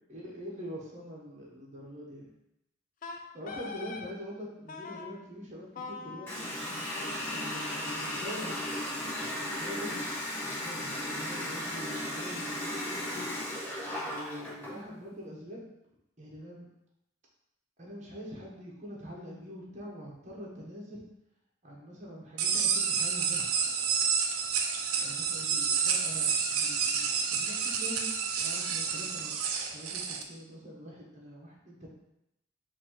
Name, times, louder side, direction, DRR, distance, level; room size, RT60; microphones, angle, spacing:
voice 1, 0.0-2.3 3.3-6.5 7.3-13.0 14.0-15.6 16.2-16.7 17.8-21.0 21.6-23.5 25.0-31.9, equal, 35° right, -4 dB, 1.0 m, -44 dB
Wind instrument woodwind instrument, 3.0-4.1 4.7-5.1 5.8-8.8, left 4 dB, 40° left, 0.4 m, -44 dB
Water tap faucet, 6.3-14.8, left 1 dB, 10° left, 1.1 m, -35 dB
sound 1, 22.4-30.2, right 6 dB, 85° right, 0.5 m, -29 dB
4.1 x 2.7 x 4.4 m, 0.85 s
head